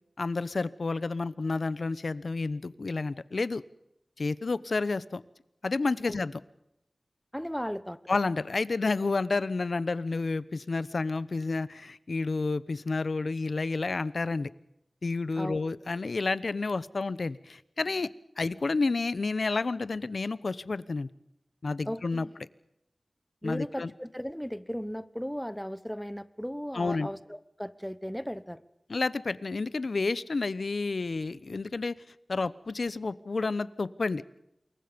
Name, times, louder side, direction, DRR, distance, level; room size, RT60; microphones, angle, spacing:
voice 1, 0.2-3.6 4.2-5.2 5.6-6.4 8.1-14.5 15.0-18.1 18.4-21.1 21.6-22.3 23.4-23.9 26.7-27.1 28.9-32.0 32.3-34.2, left 3 dB, 75° left, 17 dB, 0.9 m, -30 dB
voice 2, 7.3-8.0 15.3-15.6 21.8-22.3 23.4-28.6, equal, 5° left, 14 dB, 1.2 m, -36 dB
27.5 x 22.0 x 5.2 m, 0.80 s
wide cardioid pair, 70°, 0 cm